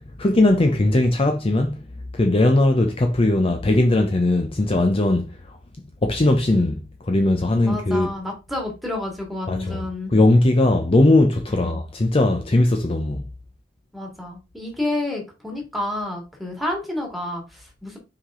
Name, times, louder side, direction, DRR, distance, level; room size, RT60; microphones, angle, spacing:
voice 1, 0.2-1.9 2.1-5.6 6.0-8.1 9.5-9.8 10.1-13.3, left 2 dB, 30° left, 0.6 m, -19 dB
voice 2, 7.6-10.1 11.6-11.8 13.9-18.0, left 1 dB, ahead, 2.1 m, -30 dB
5.7 x 4.9 x 3.7 m
head